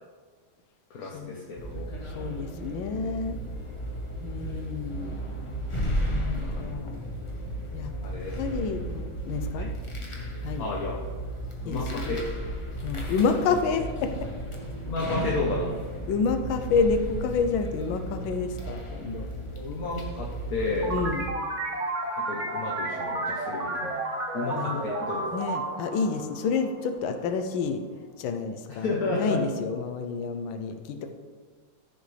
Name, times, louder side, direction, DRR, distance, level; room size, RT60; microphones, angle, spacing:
voice 1, 0.9-1.9 6.4-6.7 8.0-8.7 9.6-9.7 10.6-11.0 11.6-12.3 14.9-15.7 19.6-21.0 22.2-24.0 24.3-25.2 28.7-29.4, left 3 dB, 50° left, -3 dB, 1.3 m, -32 dB
sound 1, 1.6-21.3, right 1 dB, 20° left, 0.8 m, -34 dB
voice 2, 2.1-3.4 4.2-5.1 6.0-7.0 7.7-7.9 8.3-9.7 10.4-10.7 11.7-12.2 12.8-14.3 16.1-19.3 20.9-21.2 24.5-24.8 25.3-27.8 28.2-31.1, left 5 dB, 80° left, 8 dB, 1.5 m, -29 dB
sound 2, 20.8-27.1, right 2 dB, 40° right, 1.4 m, -32 dB
14.0 x 6.5 x 3.3 m, 1.5 s
omnidirectional pair, 2.2 m